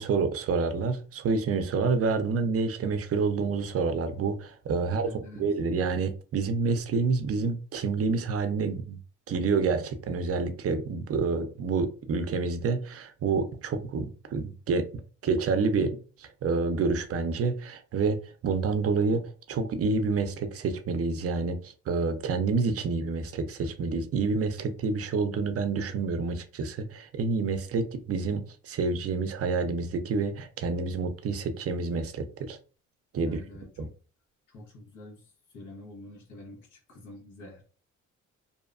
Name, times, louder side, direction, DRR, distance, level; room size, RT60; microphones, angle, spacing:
voice 1, 0.0-9.0 9.3-14.9 15.2-19.2 19.5-32.6 33.1-33.4 33.8-33.9, right 4 dB, 50° right, 9 dB, 0.5 m, -28 dB
voice 2, 4.8-5.4 33.2-33.9 34.5-37.6, left 2 dB, 85° left, 0 dB, 1.1 m, -47 dB
2.7 x 2.1 x 2.4 m, 0.37 s
cardioid pair, 90°, 30 cm